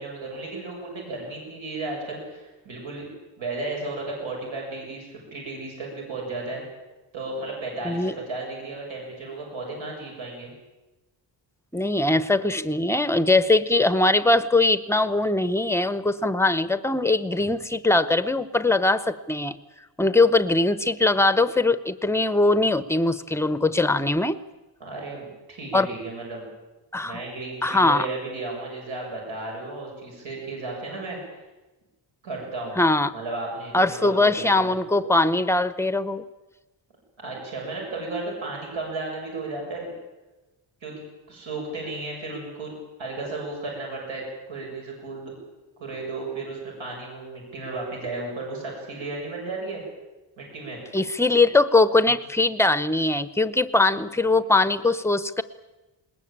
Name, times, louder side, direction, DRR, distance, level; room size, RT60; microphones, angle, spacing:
voice 1, 0.0-3.1 3.4-6.6 7.1-10.5 24.8-26.5 27.0-31.3 32.2-32.8 33.1-34.7 37.2-39.9 40.8-42.7 43.0-45.3 45.8-49.8 50.4-50.8 52.1-52.2, right 2 dB, 80° right, -1 dB, 7.3 m, -34 dB
voice 2, 11.7-19.6 20.0-24.4 25.7-25.9 26.9-27.2 27.6-28.1 32.8-33.1 33.7-36.2 50.9-55.4, left 2 dB, 5° left, 13 dB, 0.7 m, -21 dB
20.5 x 20.0 x 8.7 m, 1.1 s
wide cardioid pair, 165°, 46 cm